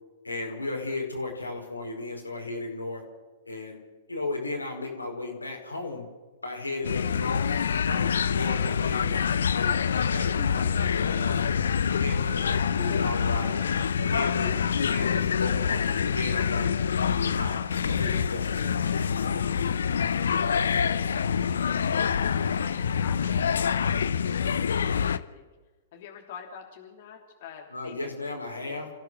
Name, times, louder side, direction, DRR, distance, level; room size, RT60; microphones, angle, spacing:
voice 1, 0.2-3.0 3.4-3.8 4.1-6.1 6.4-7.4 7.6-9.7 10.1-11.6 11.9-13.6 14.0-16.7 17.2-19.5 27.7-28.9, left 2 dB, 90° left, 1 dB, 4.9 m, -35 dB
sound 1, 6.8-25.2, left 7 dB, 70° left, 0.8 m, -26 dB
voice 2, 20.7-25.5 25.9-28.1 28.6-28.9, left 7 dB, 50° left, 1 dB, 3.1 m, -46 dB
29.0 x 15.5 x 6.4 m, 1.3 s
figure-of-eight pair, 105°, 0 cm